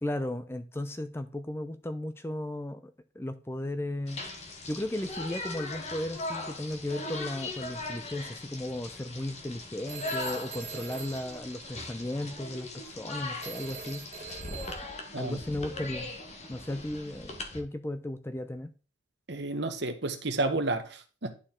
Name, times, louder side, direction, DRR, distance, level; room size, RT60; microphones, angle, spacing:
voice 1, 0.0-4.2 4.7-14.1 15.2-16.1 16.5-18.7, left 1 dB, 10° left, 0.5 m, -35 dB
sound 1, 4.1-17.6, left 2 dB, 35° left, 1.1 m, -40 dB
Telephone, 9.9-12.2 13.4-15.1, right 6 dB, 35° right, 1.0 m, -44 dB
voice 2, 19.3-21.3, right 2 dB, 60° right, 1.1 m, -31 dB
11.0 x 4.6 x 3.7 m
head